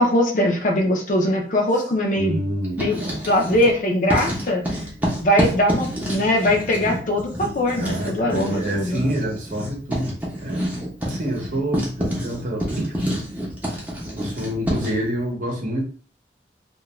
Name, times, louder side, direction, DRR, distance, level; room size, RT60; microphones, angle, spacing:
voice 1, 0.0-2.4 2.8-3.0 3.3-4.6 5.2-9.1, left 1 dB, 45° left, 2 dB, 0.5 m, -21 dB
voice 2, 2.2-3.2 7.8-12.9 14.2-15.8, right 1 dB, 45° right, -1 dB, 0.8 m, -28 dB
Writing, 2.6-3.8 4.1-15.0, equal, 10° right, 0.6 m, -28 dB
2.3 x 2.2 x 3.0 m, 0.42 s
head